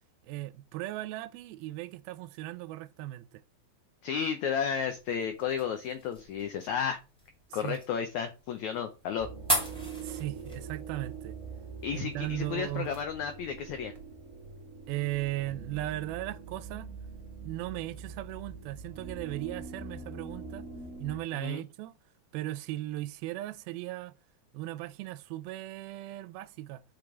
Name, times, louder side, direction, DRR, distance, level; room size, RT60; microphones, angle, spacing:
voice 1, 0.2-3.4 7.5-7.8 10.0-11.4 11.9-12.9 14.9-16.9 17.4-20.7 21.0-21.9 22.3-24.1 24.5-26.8, right 16 dB, 85° right, 2.4 m, -37 dB
voice 2, 4.0-7.0 7.5-9.3 11.8-13.9 21.3-21.6, left 7 dB, 80° left, 1.6 m, -32 dB
sound 1, 4.6-13.0, equal, ahead, 1.8 m, -39 dB
sound 2, 9.2-21.2, right 4 dB, 45° right, 1.0 m, -43 dB
6.0 x 5.2 x 6.1 m
omnidirectional pair, 4.4 m